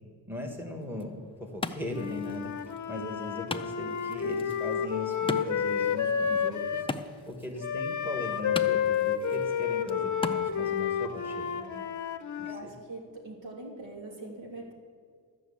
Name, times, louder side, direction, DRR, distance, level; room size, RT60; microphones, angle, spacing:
voice 1, 0.3-1.2 1.5-2.5 2.9-6.8 7.2-11.5 12.4-12.7, left 1 dB, 5° right, 2 dB, 1.3 m, -38 dB
Wood, 0.8-10.8, left 3 dB, 15° left, 0.3 m, -41 dB
Wind instrument woodwind instrument, 1.9-6.9 7.6-12.6, left 8 dB, 40° left, 0.7 m, -30 dB
voice 2, 12.4-14.7, right 2 dB, 80° right, -1 dB, 2.8 m, -43 dB
13.0 x 6.1 x 8.3 m, 2.1 s
wide cardioid pair, 150°, 45 cm